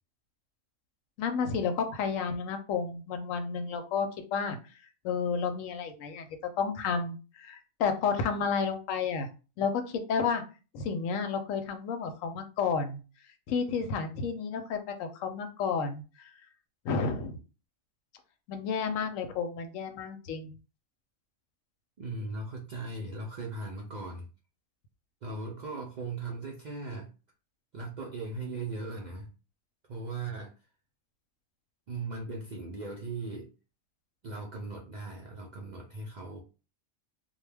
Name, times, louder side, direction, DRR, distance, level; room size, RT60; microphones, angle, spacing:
voice 1, 1.2-4.6 5.0-6.3 6.6-9.3 9.6-10.4 10.7-13.0 13.5-16.3 16.8-17.4 18.5-20.5, left 5 dB, 90° left, 8 dB, 1.0 m, -31 dB
voice 2, 22.0-24.3 25.2-27.1 27.7-29.3 29.9-30.5 31.9-33.5 34.2-36.4, right 3 dB, 70° right, 0 dB, 0.4 m, -38 dB
2.2 x 2.2 x 3.3 m, 0.33 s
omnidirectional pair, 1.3 m